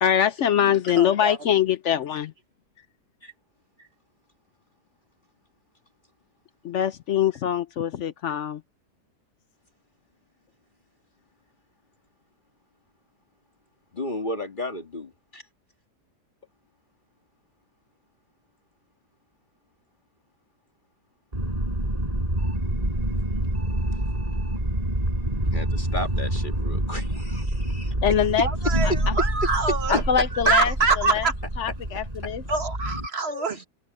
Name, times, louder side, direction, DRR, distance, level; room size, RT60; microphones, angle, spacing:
voice 1, 0.0-2.3 6.6-8.6 28.0-28.5 29.9-31.3 31.6-32.4, left 9 dB, 60° left, 0.8 m, -23 dB
voice 2, 0.7-1.4 28.4-30.0 30.3-31.3 32.5-33.6, right 4 dB, 40° right, 1.7 m, -25 dB
voice 3, 13.9-15.4 25.5-27.9 28.6-29.0 33.3-33.7, left 1 dB, 30° left, 1.9 m, -33 dB
sound 1, 21.3-33.1, right 1 dB, 20° right, 6.3 m, -27 dB
omnidirectional pair, 1.7 m